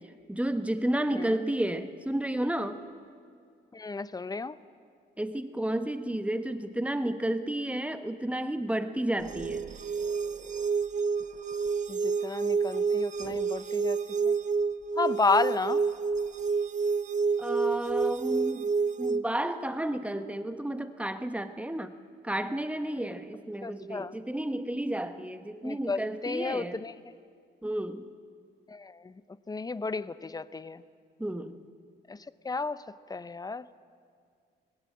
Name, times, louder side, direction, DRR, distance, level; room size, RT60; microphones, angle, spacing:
voice 1, 0.3-2.8 5.2-9.6 17.4-18.7 19.0-21.9 22.2-26.8 27.6-28.0 31.2-31.6, right 1 dB, 5° right, 9 dB, 1.1 m, -31 dB
voice 2, 3.7-4.6 11.9-14.0 14.2-14.3 15.0-15.8 23.6-24.1 25.6-26.9 28.7-29.0 29.5-30.8 32.1-32.2 32.4-32.8 33.1-33.6, left 3 dB, 20° left, 16 dB, 0.6 m, -32 dB
sound 1, 9.2-19.2, right 5 dB, 40° right, 0.7 m, -29 dB
19.5 x 16.5 x 8.5 m, 2.2 s
cardioid pair, 90°, 20 cm